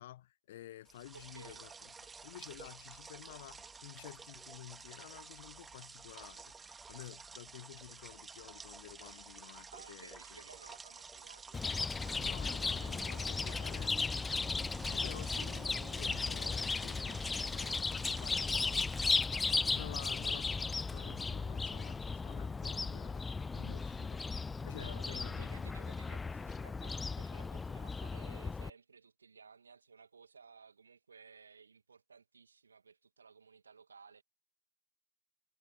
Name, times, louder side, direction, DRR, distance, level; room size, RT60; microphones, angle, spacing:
voice 1, 0.0-10.4 12.2-13.9 14.8-20.5 20.9-23.3 23.5-24.3 24.6-25.5, left 14 dB, 55° left, 1.4 m, -52 dB
sound 1, 0.8-19.2, right 5 dB, 15° right, 2.4 m, -52 dB
voice 2, 1.1-1.7 9.7-14.0 24.8-34.2, right 5 dB, 75° right, 2.3 m, -57 dB
Chirp tweet, 11.5-28.7, left 4 dB, 15° left, 0.5 m, -36 dB
sound 2, 13.5-18.6 19.4-19.8 21.0-21.1 21.8-22.2 24.3-24.9 25.6-25.7 25.9-26.0, right 17 dB, 55° right, 3.2 m, -61 dB
figure-of-eight pair, 90°, 0 cm